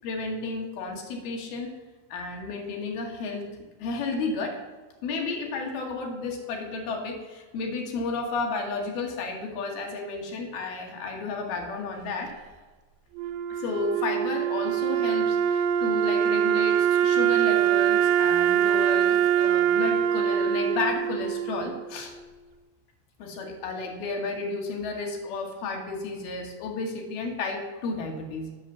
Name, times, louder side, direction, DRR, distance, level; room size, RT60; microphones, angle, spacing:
voice 1, 0.0-1.7 2.1-3.5 3.8-4.6 5.0-12.3 13.5-22.1 23.2-28.5, left 3 dB, 75° left, 2 dB, 3.2 m, -32 dB
Wind instrument woodwind instrument, 13.2-22.2, right 9 dB, 80° right, 2.5 m, -24 dB
8.1 x 6.5 x 7.1 m, 1.3 s
omnidirectional pair, 4.4 m